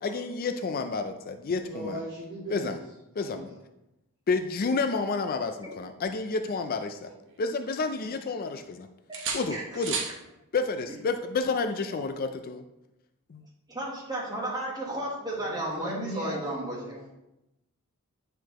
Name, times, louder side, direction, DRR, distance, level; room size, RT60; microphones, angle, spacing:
voice 1, 0.0-2.0 2.5-2.8 3.2-3.5 4.3-7.1 7.4-8.9 9.3-10.0 10.5-12.6 13.3-13.5, left 4 dB, 40° left, 7 dB, 0.4 m, -30 dB
voice 2, 1.6-2.8 3.2-3.5 15.4-17.1, equal, 35° right, -11 dB, 2.6 m, -39 dB
sound 1, 6.0-7.5 7.9-8.7 9.1-10.2 12.1-12.3, right 5 dB, 55° right, 1.0 m, -37 dB
voice 3, 9.5-10.1 10.9-11.0 11.9-12.0 13.7-17.0, right 1 dB, 20° right, -3 dB, 1.4 m, -34 dB
9.8 x 4.6 x 3.0 m, 0.91 s
head